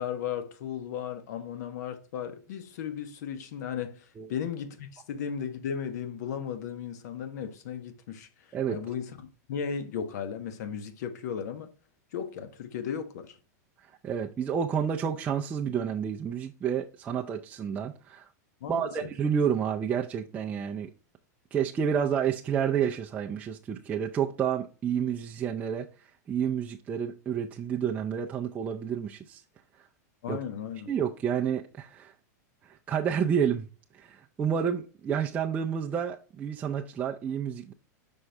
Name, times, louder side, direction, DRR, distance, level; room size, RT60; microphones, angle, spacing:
voice 1, 0.0-8.3 8.7-11.7 12.1-13.3 18.6-19.1 30.2-30.9, left 8 dB, 70° left, 1.1 m, -35 dB
voice 2, 14.0-18.3 18.7-20.9 21.5-25.9 26.3-29.4 30.3-30.4 30.9-32.1 32.6-33.7 34.0-37.7, right 8 dB, 15° right, 0.4 m, -29 dB
5.8 x 5.4 x 3.3 m
supercardioid pair, 150°, 9 cm